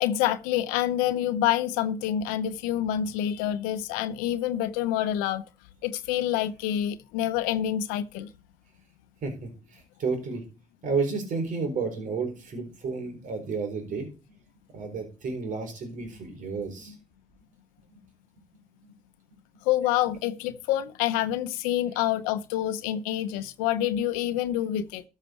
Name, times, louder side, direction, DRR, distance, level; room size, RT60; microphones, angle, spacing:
voice 1, 0.0-5.4 5.8-8.3 19.7-25.0, left 12 dB, 90° left, 0.7 m, -27 dB
voice 2, 9.2-10.4 10.8-14.1 14.7-16.9 18.8-18.9, right 4 dB, 65° right, 4.4 m, -31 dB
13.5 x 6.5 x 4.5 m
supercardioid pair, 60°, 14 cm